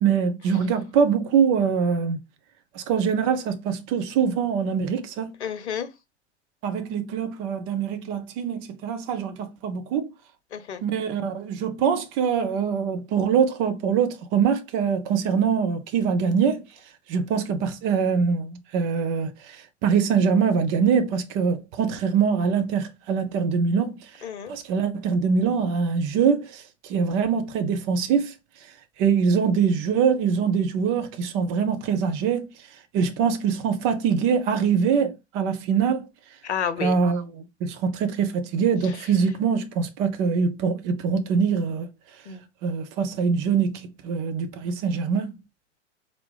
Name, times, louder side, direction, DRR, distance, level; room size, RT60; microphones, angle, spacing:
voice 1, 0.0-2.2 2.7-5.3 6.6-10.1 10.8-16.6 17.1-24.1 24.5-28.3 29.0-32.5 32.9-36.1 36.8-41.9 42.6-45.3, right 6 dB, 35° right, 0.7 m, -23 dB
voice 2, 5.4-5.9 10.5-10.8 24.2-24.5 36.4-37.0 42.3-42.4, left 8 dB, 70° left, 0.8 m, -30 dB
4.3 x 2.7 x 3.3 m
figure-of-eight pair, 95°, 35 cm